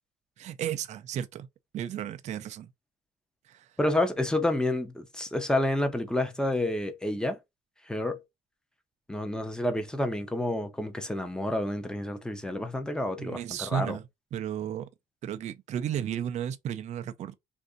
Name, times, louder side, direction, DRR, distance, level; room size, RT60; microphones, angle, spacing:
voice 1, 0.4-1.5 1.7-2.7 3.4-3.8 13.2-14.9 15.2-17.3, right 10 dB, 45° right, 0.4 m, -34 dB
voice 2, 3.8-7.4 7.9-8.2 9.1-14.0, left 1 dB, 5° left, 0.6 m, -29 dB
2.6 x 2.5 x 3.6 m
cardioid pair, 110°, 17 cm